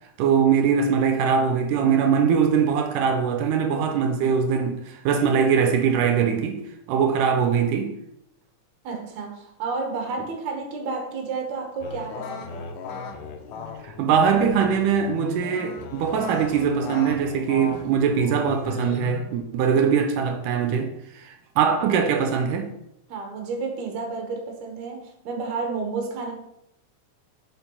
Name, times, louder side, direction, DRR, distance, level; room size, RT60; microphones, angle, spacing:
voice 1, 0.2-6.6 6.9-7.9 13.8-22.7, right 7 dB, 90° right, 2.2 m, -22 dB
voice 2, 8.8-12.7 23.1-26.3, right 4 dB, 70° right, 2.3 m, -31 dB
sound 1, 11.8-19.4, left 5 dB, 85° left, 2.3 m, -36 dB
5.4 x 4.5 x 5.4 m
omnidirectional pair, 3.6 m